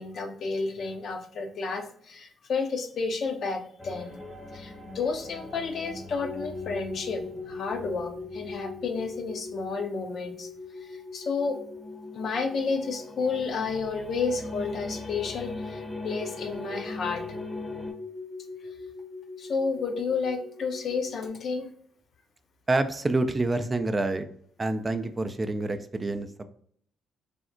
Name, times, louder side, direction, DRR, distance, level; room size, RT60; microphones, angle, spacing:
voice 1, 0.0-4.2 4.5-10.5 10.8-11.6 12.1-17.2 19.4-21.7, left 4 dB, 60° left, 5 dB, 0.5 m, -31 dB
sound 1, 3.8-10.0 10.8-17.9, left 2 dB, 15° left, 0.7 m, -42 dB
sound 2, 6.2-21.3, left 4 dB, 85° left, 0.8 m, -42 dB
voice 2, 22.7-24.3 24.6-26.4, right 2 dB, 30° right, 9 dB, 0.3 m, -27 dB
3.4 x 2.0 x 2.5 m, 0.62 s
hypercardioid pair, 50°, 0 cm